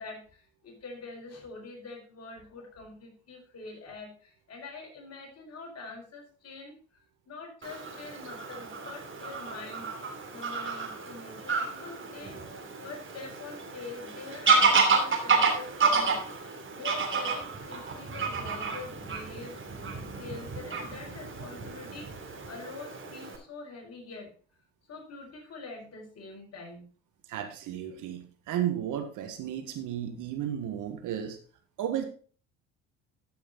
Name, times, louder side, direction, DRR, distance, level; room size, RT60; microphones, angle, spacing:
voice 1, 0.0-6.8 7.3-9.9 10.3-24.3 24.9-26.9, left 3 dB, 45° left, 1 dB, 4.6 m, -45 dB
Fowl / Bird vocalization bird call bird song, 7.6-23.4, right 4 dB, 35° right, 3.2 m, -30 dB
voice 2, 27.3-31.4 31.8-32.1, right 10 dB, 60° right, 6 dB, 1.8 m, -33 dB
13.0 x 6.3 x 4.1 m, 0.41 s
hypercardioid pair, 60°, 35 cm